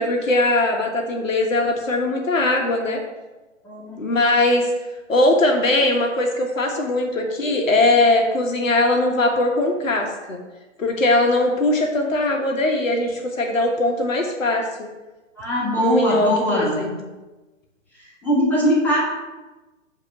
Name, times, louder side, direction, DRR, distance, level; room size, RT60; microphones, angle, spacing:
voice 1, 0.0-3.0 4.0-4.7 5.1-10.4 10.8-14.7 15.8-16.9, left 2 dB, 80° left, 3 dB, 1.4 m, -20 dB
voice 2, 3.6-4.0 15.4-16.9 18.2-19.0, equal, 5° left, -6 dB, 1.5 m, -21 dB
8.0 x 3.0 x 5.8 m, 1.1 s
hypercardioid pair, 135°, 39 cm